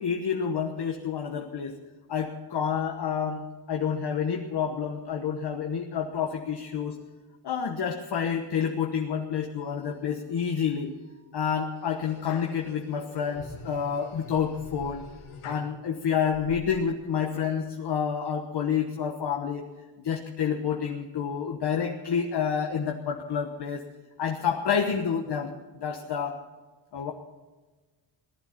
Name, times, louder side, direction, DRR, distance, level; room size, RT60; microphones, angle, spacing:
voice 1, 0.0-1.8 2.1-7.0 7.4-10.9 11.3-15.0 15.4-19.6 20.0-23.8 24.2-26.4 26.9-27.1, left 7 dB, 55° left, 3 dB, 1.2 m, -29 dB
sound 1, 9.6-10.3 10.7-11.2 11.8-15.7 16.3-16.6, left 4 dB, 90° left, 2.1 m, -45 dB
18.0 x 11.5 x 5.8 m, 1.3 s
wide cardioid pair, 140°, 47 cm